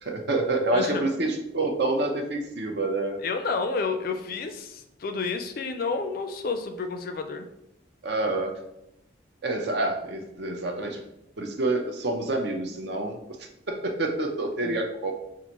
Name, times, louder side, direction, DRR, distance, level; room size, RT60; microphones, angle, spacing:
voice 1, 0.0-3.2 8.0-8.6 9.4-11.0 11.4-13.2 13.7-15.1, right 2 dB, 55° right, 3 dB, 0.6 m, -27 dB
voice 2, 0.7-1.1 3.2-7.5 14.6-14.7, left 4 dB, 50° left, 7 dB, 0.4 m, -30 dB
5.4 x 2.5 x 2.9 m, 0.84 s
head